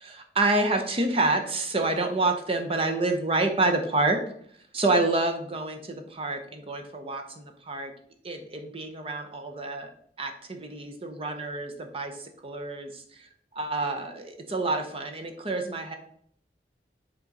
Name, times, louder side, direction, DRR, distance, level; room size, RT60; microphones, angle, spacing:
voice 1, 0.1-4.2 4.7-7.9 8.2-9.9 10.2-15.9, right 2 dB, 35° right, 5 dB, 0.7 m, -28 dB
7.3 x 3.7 x 3.9 m, 0.64 s
head